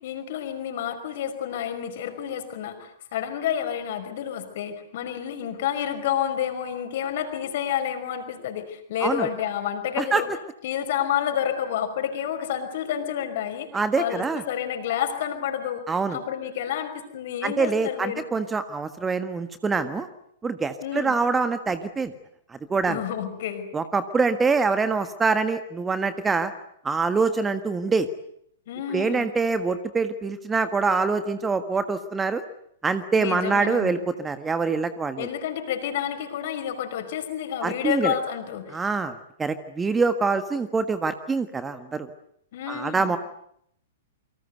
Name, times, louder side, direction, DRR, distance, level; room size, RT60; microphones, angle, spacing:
voice 1, 0.0-10.3 10.6-13.7 14.0-18.3 20.8-21.2 22.9-23.7 28.7-29.3 33.2-34.0 35.2-38.8 42.5-43.1, left 9 dB, 50° left, 8 dB, 5.4 m, -29 dB
voice 2, 13.7-14.4 15.9-16.2 17.4-20.1 20.4-22.1 22.7-23.0 23.7-26.5 26.8-28.1 28.9-32.4 32.8-35.3 37.6-38.1 38.7-42.1 42.7-43.2, right 4 dB, 10° right, 11 dB, 1.5 m, -25 dB
29.0 x 24.5 x 8.0 m, 0.71 s
figure-of-eight pair, 105°, 0 cm